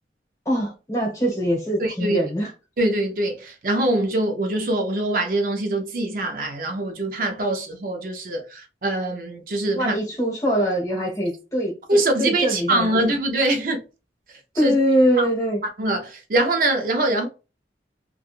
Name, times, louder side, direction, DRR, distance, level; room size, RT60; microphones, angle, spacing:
voice 1, 0.5-2.5 9.7-13.0 14.5-15.6, equal, 20° left, 0.9 m, -23 dB
voice 2, 1.8-2.2 2.8-10.0 11.9-13.8 14.5-14.7 15.2-15.3 15.8-17.3, right 2 dB, 50° right, 0.5 m, -23 dB
3.3 x 2.2 x 2.4 m
head